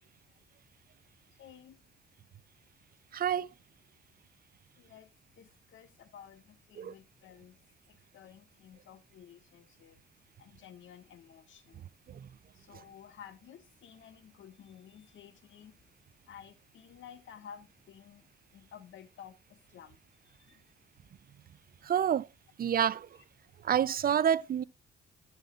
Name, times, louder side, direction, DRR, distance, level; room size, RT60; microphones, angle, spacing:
voice 1, 1.3-1.8 4.8-7.6 7.9-10.0 10.4-11.9 12.5-15.8 16.3-20.7 23.2-23.3, left 8 dB, 75° left, 1.7 m, -53 dB
voice 2, 3.1-3.5 6.8-6.9 21.8-22.3 22.6-23.1 23.6-24.6, right 9 dB, 50° right, 0.6 m, -27 dB
15.5 x 7.1 x 2.5 m
cardioid pair, 90°, 20 cm